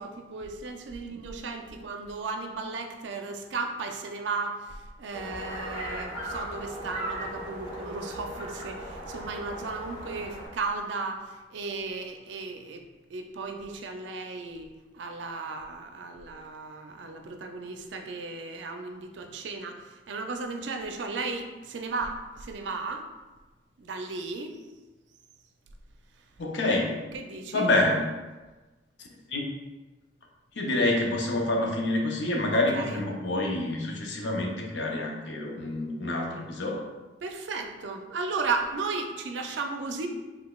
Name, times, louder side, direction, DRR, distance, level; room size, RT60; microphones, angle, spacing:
voice 1, 0.0-23.1 23.8-24.6 26.1-26.2 26.7-26.8 27.1-27.7 32.5-33.0 37.2-40.1, right 4 dB, 85° right, 5 dB, 0.4 m, -35 dB
sound 1, 5.1-10.5, equal, 30° left, 1.0 m, -38 dB
voice 2, 26.4-27.0 27.5-28.1 29.3-29.4 30.5-36.8, left 2 dB, 85° left, 0 dB, 0.6 m, -27 dB
3.9 x 3.3 x 2.3 m, 1.2 s
head